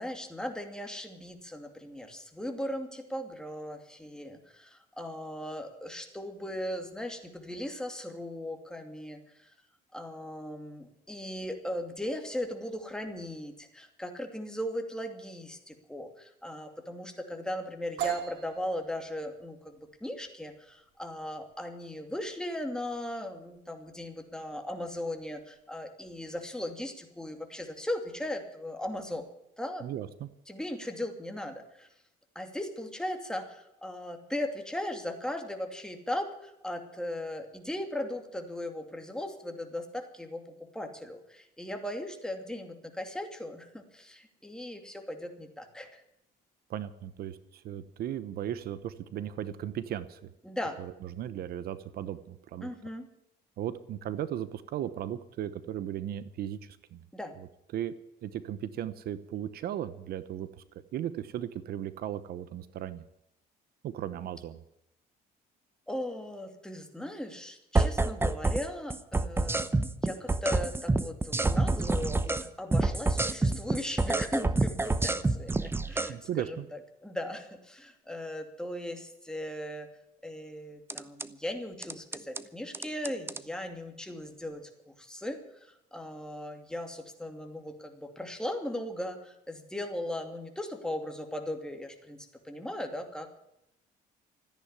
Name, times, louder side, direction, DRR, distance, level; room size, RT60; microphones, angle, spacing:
voice 1, 0.0-9.5 9.9-29.2 29.6-29.9 30.5-31.9 32.3-46.0 50.4-50.8 52.6-53.1 57.1-57.3 65.9-69.7 70.0-79.9 80.2-84.7 85.0-93.4, left 1 dB, 5° left, 4 dB, 2.6 m, -38 dB
sound 1, 18.0-25.6, right 9 dB, 85° right, 4.0 m, -42 dB
voice 2, 29.8-30.3 46.7-50.3 50.8-52.7 53.6-57.0 57.4-57.5 57.7-57.9 58.2-63.1 63.8-64.6 76.1-76.7, right 11 dB, 65° right, 14 dB, 1.0 m, -36 dB
sound 2, 67.8-68.7 68.9-72.5 72.7-76.1 80.9-81.3 81.8-82.4 82.7-83.4, right 2 dB, 15° right, 0.8 m, -27 dB
14.0 x 10.0 x 9.8 m, 0.82 s
cardioid pair, 110°, 17 cm